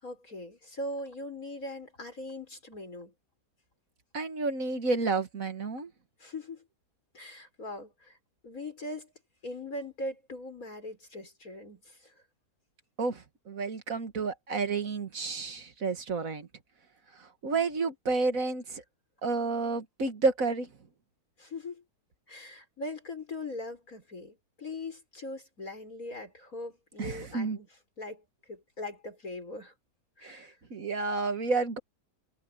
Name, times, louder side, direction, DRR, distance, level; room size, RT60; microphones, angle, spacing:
voice 1, 0.0-3.1 6.2-6.6 7.1-8.2 8.4-9.1 9.4-12.1 21.4-21.8 22.3-27.7 28.0-29.7 30.2-30.6, left 1 dB, 65° left, 6.5 m, -41 dB
voice 2, 4.1-5.9 13.0-16.5 17.2-18.8 19.2-20.7 27.0-27.6 30.2-31.8, right 3 dB, 65° right, 2.1 m, -30 dB
omnidirectional pair, 1.6 m